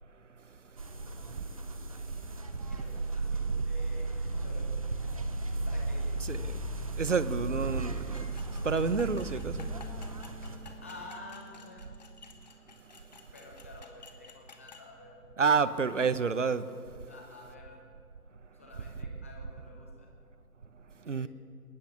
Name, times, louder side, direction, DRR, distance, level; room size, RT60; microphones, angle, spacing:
sound 1, 0.8-10.6, right 2 dB, 20° right, 0.9 m, -35 dB
voice 1, 2.7-5.1 5.7-6.0 10.6-11.9 13.3-15.1 17.1-17.8 18.5-20.1 21.0-21.3, left 2 dB, 10° left, 0.9 m, -50 dB
voice 2, 6.2-6.6 7.0-8.4 8.6-9.7 15.4-16.7 21.1-21.3, right 5 dB, 50° right, 0.9 m, -29 dB
sound 2, 8.1-14.9, left 5 dB, 25° left, 1.4 m, -53 dB
Bass guitar, 9.5-15.8, left 1 dB, 85° left, 3.3 m, -56 dB
21.5 x 19.5 x 6.8 m
figure-of-eight pair, 150°, 47 cm